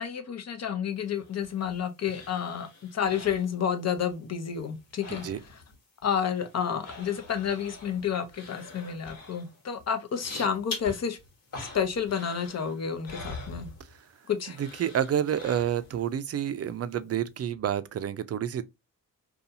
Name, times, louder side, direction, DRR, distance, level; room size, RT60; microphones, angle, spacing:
voice 1, 0.0-5.3 6.0-11.2 11.6-13.7 14.3-14.6, left 7 dB, 50° left, 0.7 m, -30 dB
sound 1, 1.1-4.1 4.4-5.8 6.0-14.2 14.5-16.1 16.5-16.6, left 2 dB, 65° left, 1.4 m, -44 dB
voice 2, 14.6-18.6, right 9 dB, 45° right, 0.4 m, -29 dB
2.6 x 2.4 x 2.6 m
cardioid pair, 70°, 34 cm